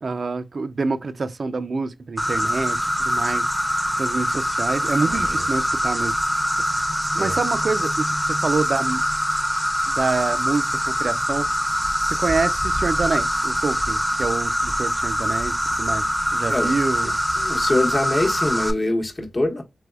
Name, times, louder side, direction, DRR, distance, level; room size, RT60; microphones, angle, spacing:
voice 1, 0.0-6.2 7.1-9.0 9.9-11.5 12.0-16.0 16.3-17.2, right 4 dB, 60° right, 0.4 m, -27 dB
Insect, 2.2-18.7, equal, 5° right, 0.6 m, -23 dB
voice 2, 17.4-19.6, left 1 dB, 40° left, 0.9 m, -23 dB
3.4 x 3.0 x 2.3 m
cardioid pair, 60°, 0 cm